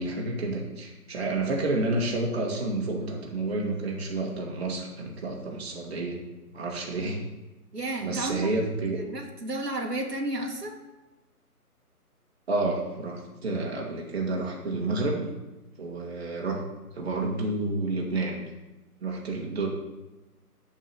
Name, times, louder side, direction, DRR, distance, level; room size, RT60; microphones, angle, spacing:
voice 1, 0.0-6.2 6.5-7.2 8.0-9.0 12.5-15.3 15.8-16.6 16.9-18.4 19.0-19.7, right 2 dB, 40° right, -1 dB, 1.7 m, -30 dB
voice 2, 7.7-8.5 8.9-10.8, right 1 dB, 90° right, 2 dB, 1.9 m, -32 dB
7.3 x 5.4 x 6.7 m, 1.1 s
figure-of-eight pair, 155°, 47 cm